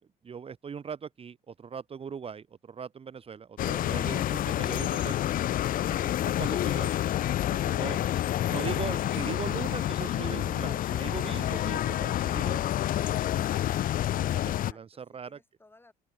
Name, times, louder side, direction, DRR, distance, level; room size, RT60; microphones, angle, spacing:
voice 1, 0.2-5.2 5.9-6.9 7.5-8.1 8.5-12.6 13.0-13.6 14.1-15.4, right 6 dB, 35° right, 1.9 m, -40 dB
sound 1, 3.6-14.7, left 12 dB, 55° left, 0.7 m, -28 dB
voice 2, 14.5-15.9, left 2 dB, 15° left, 6.6 m, -59 dB
open air
cardioid pair, 110°, 17 cm